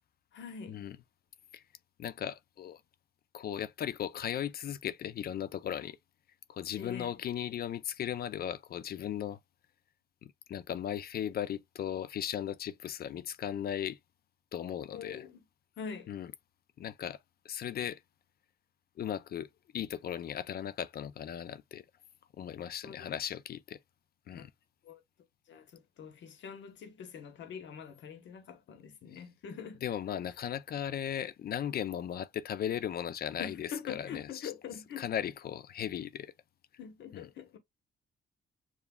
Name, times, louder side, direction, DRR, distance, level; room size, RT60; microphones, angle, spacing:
voice 1, 0.3-0.9 6.8-7.2 14.9-15.4 15.8-16.1 22.8-23.2 24.3-24.4 24.8-25.0 25.5-29.8 33.4-35.1 36.8-37.6, left 7 dB, 70° left, 1.0 m, -44 dB
voice 2, 2.0-2.8 3.3-6.0 6.5-9.4 10.2-14.0 14.5-15.2 16.1-16.3 16.8-17.2 17.4-18.0 19.0-21.8 22.4-23.8 24.3-24.5 29.8-34.5 35.0-36.3 37.1-37.3, left 10 dB, 50° left, 0.4 m, -37 dB
7.0 x 2.3 x 2.3 m
cardioid pair, 90°, 20 cm